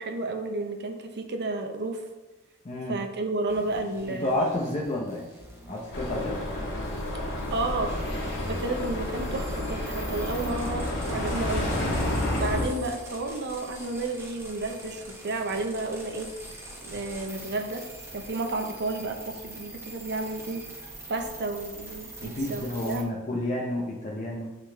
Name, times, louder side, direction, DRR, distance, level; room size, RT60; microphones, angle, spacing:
voice 1, 0.0-2.0 2.9-4.4 7.5-7.9 8.5-11.7 12.4-16.3 16.8-17.9 18.1-20.6 21.1-23.1, right 2 dB, 50° right, 5 dB, 0.7 m, -31 dB
voice 2, 2.6-3.0 4.1-5.3 5.7-6.4 22.2-24.6, left 1 dB, 30° left, -2 dB, 0.7 m, -30 dB
sound 1, 3.5-23.0, right 1 dB, 10° right, 1.2 m, -45 dB
sound 2, 5.9-12.6, left 1 dB, 55° left, 2.3 m, -30 dB
9.1 x 4.0 x 3.3 m, 1.1 s
head